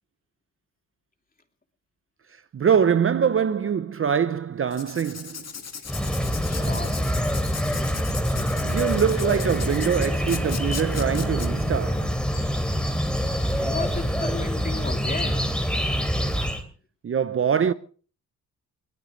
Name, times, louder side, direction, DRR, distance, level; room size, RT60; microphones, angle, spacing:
voice 1, 2.5-5.4 6.6-6.8 8.6-12.2 17.0-17.7, right 7 dB, 40° right, 0.7 m, -24 dB
Writing, 4.7-11.5, left 6 dB, 50° left, 2.0 m, -37 dB
sound 1, 5.9-16.6, equal, 5° left, 2.9 m, -25 dB
voice 2, 6.5-6.9 13.4-15.5, left 3 dB, 25° left, 2.8 m, -34 dB
21.5 x 18.5 x 3.1 m
cardioid pair, 85°, 34 cm